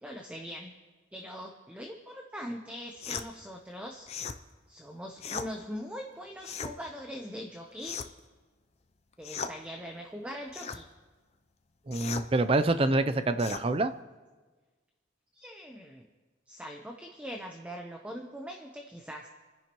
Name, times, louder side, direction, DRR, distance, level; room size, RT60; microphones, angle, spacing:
voice 1, 0.0-0.7 1.1-4.2 4.7-8.0 9.2-10.9 15.3-16.1 16.5-19.3, equal, 5° right, 2 dB, 0.8 m, -42 dB
sound 1, 3.0-3.3 4.1-4.4 5.2-5.5 6.4-6.7 7.8-8.2 9.2-9.6 10.5-10.8 11.9-12.3 13.4-13.7, left 6 dB, 35° left, 0.5 m, -37 dB
voice 2, 11.9-13.9, right 2 dB, 30° right, 11 dB, 0.5 m, -26 dB
29.5 x 10.5 x 3.1 m, 1.4 s
head